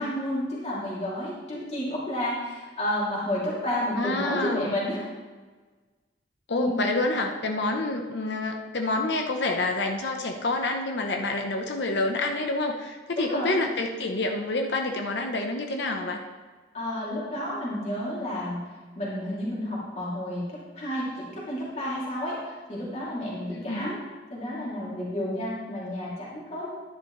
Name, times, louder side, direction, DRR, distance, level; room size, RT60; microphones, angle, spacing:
voice 1, 0.0-5.0 6.6-6.8 13.1-13.6 16.7-18.6 19.0-20.4 20.7-23.9 24.3-26.7, left 1 dB, 35° left, -7 dB, 2.8 m, -31 dB
voice 2, 4.0-4.8 6.5-16.2 23.5-23.9, left 2 dB, 65° left, 3 dB, 0.9 m, -28 dB
11.5 x 10.0 x 3.2 m, 1.4 s
head